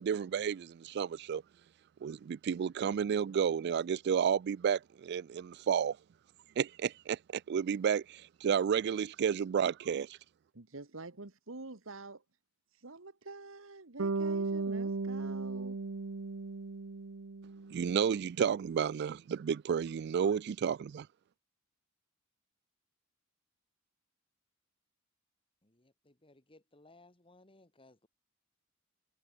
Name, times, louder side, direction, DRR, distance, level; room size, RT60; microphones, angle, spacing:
voice 1, 0.0-1.4 2.0-6.0 6.6-10.2 17.7-21.1, right 7 dB, 55° right, 0.3 m, -31 dB
voice 2, 10.5-12.2 12.7-15.8, right 3 dB, 70° right, 1.6 m, -47 dB
Bass guitar, 14.0-18.1, right 3 dB, 85° right, 0.8 m, -36 dB
voice 3, 25.6-28.1, left 2 dB, 25° left, 2.8 m, -62 dB
head